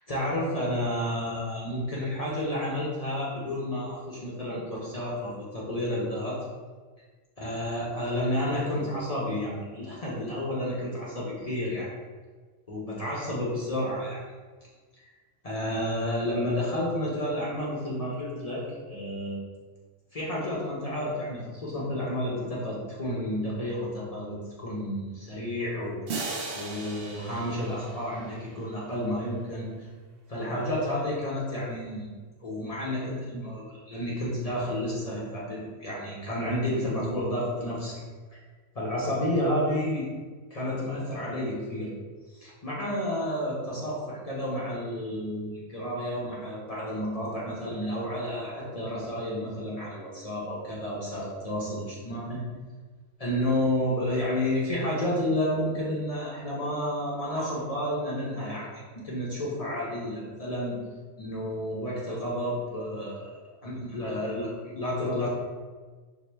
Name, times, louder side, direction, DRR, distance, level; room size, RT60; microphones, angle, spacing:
voice 1, 0.1-6.4 7.4-11.9 12.7-14.2 15.0-15.1 15.4-19.4 20.1-26.0 26.5-29.7 30.3-32.1 32.4-38.0 38.7-40.1 40.5-41.9 42.3-52.4 53.2-60.8 61.2-65.3, left 1 dB, 40° left, -5 dB, 0.6 m, -31 dB
sound 1, 26.1-28.9, right 3 dB, 60° right, 0.7 m, -38 dB
4.6 x 2.1 x 3.3 m, 1.4 s
omnidirectional pair, 1.3 m